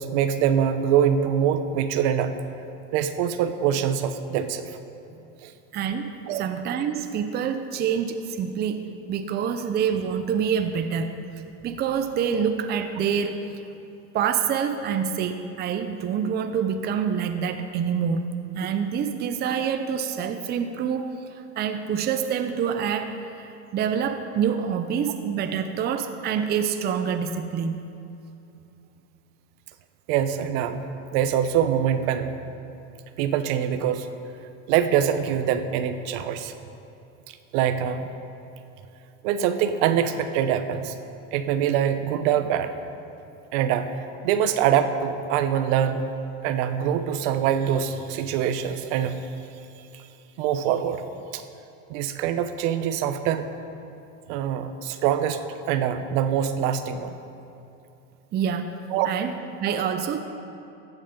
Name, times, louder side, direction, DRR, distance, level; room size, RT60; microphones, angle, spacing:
voice 1, 0.0-2.3 2.9-4.7 5.4-5.5 6.3-6.5 30.1-30.8 31.1-32.3 33.2-34.1 34.7-36.5 37.3-38.0 39.2-40.9 41.3-42.7 43.5-44.0 44.2-46.1 46.4-49.3 49.9-50.0 50.4-51.0 51.3-51.4 51.9-53.5 54.3-55.4 55.7-57.1 58.9-59.1, right 9 dB, 65° right, 10 dB, 0.9 m, -24 dB
voice 2, 5.7-6.1 6.4-11.2 11.6-13.6 14.1-21.1 21.6-27.8 58.3-58.8 59.0-60.2, right 7 dB, 30° right, 8 dB, 0.6 m, -26 dB
15.0 x 8.1 x 5.2 m, 2.8 s
supercardioid pair, 130°, 36 cm